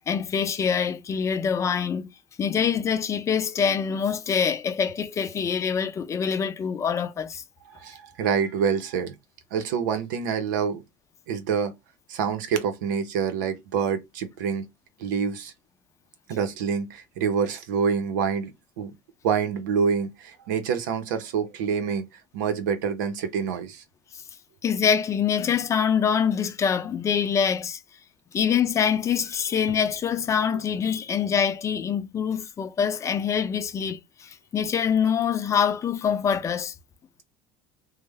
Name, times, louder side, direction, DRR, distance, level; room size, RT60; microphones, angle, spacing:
voice 1, 0.1-2.1 2.4-7.4 24.6-27.8 28.3-36.7, left 7 dB, 30° left, 0.5 m, -25 dB
voice 2, 7.7-9.1 9.5-10.8 11.3-11.7 12.1-14.7 15.0-15.5 16.3-18.5 18.8-18.9 19.2-22.1 22.3-23.8, right 6 dB, 90° right, 0.7 m, -26 dB
3.1 x 2.0 x 3.3 m
supercardioid pair, 105°, 10 cm